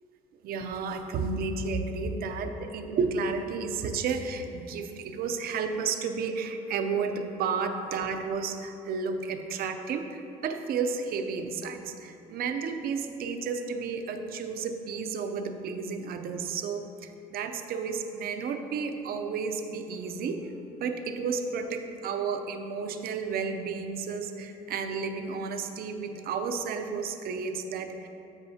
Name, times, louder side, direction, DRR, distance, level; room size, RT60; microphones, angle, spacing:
voice 1, 0.4-20.5 20.8-28.1, right 5 dB, 65° right, 6 dB, 0.6 m, -32 dB
13.5 x 5.3 x 2.8 m, 2.9 s
cardioid pair, 110°, 17 cm